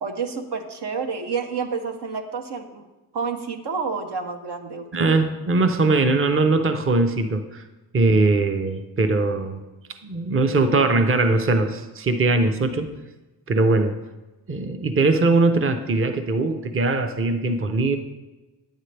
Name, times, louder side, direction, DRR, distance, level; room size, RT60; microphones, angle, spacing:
voice 1, 0.0-2.8 3.1-5.1, right 5 dB, 75° right, 5 dB, 1.0 m, -29 dB
voice 2, 4.9-7.6 7.9-9.6 10.0-12.9 13.5-14.0 14.5-18.0, right 3 dB, 30° right, 7 dB, 0.7 m, -21 dB
9.2 x 9.0 x 3.3 m, 1.1 s
cardioid pair, 65°, 40 cm